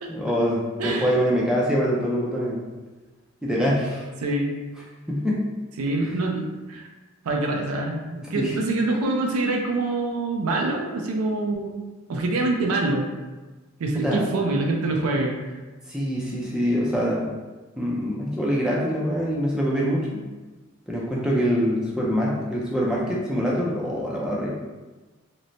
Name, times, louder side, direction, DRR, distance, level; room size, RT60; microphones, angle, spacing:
voice 1, 0.1-2.7 3.4-4.1 5.1-5.4 8.3-8.5 13.9-14.2 15.9-17.3 17.8-20.2 20.9-24.5, equal, 5° right, -5 dB, 0.4 m, -24 dB
voice 2, 0.8-1.2 3.5-3.6 4.2-4.5 5.8-6.9 7.2-13.1 13.8-15.4, right 2 dB, 90° right, 1 dB, 0.4 m, -25 dB
3.0 x 2.0 x 2.6 m, 1.2 s
head